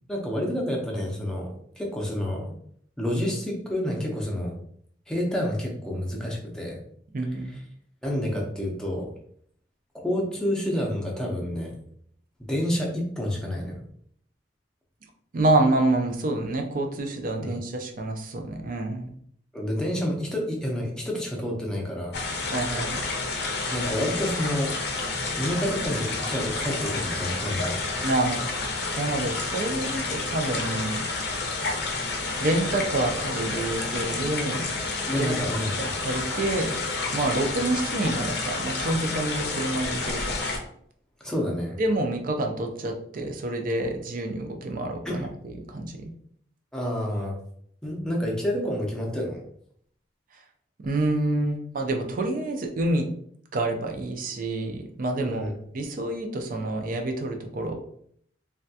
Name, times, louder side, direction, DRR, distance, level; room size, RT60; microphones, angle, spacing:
voice 1, 0.1-1.5 1.8-2.5 3.0-4.6 5.1-6.8 8.0-9.1 10.0-11.7 12.5-13.8 17.4-17.6 19.5-22.2 23.7-24.7 25.3-27.9 35.1-35.7 41.2-41.8 45.0-45.3 46.7-47.4 47.8-49.4 55.2-55.6, equal, 5° left, -2 dB, 0.6 m, -29 dB
voice 2, 7.1-7.6 15.3-19.1 22.5-23.1 28.0-28.5 29.0-31.0 31.6-31.8 32.4-34.7 35.2-35.4 35.8-36.8 37.1-40.4 41.8-46.1 50.3-50.4 50.8-53.1 53.5-55.5 55.7-57.8, right 2 dB, 50° right, 4 dB, 0.4 m, -27 dB
sound 1, 22.1-40.6, left 3 dB, 65° left, 0.6 m, -30 dB
3.3 x 2.3 x 2.7 m, 0.65 s
head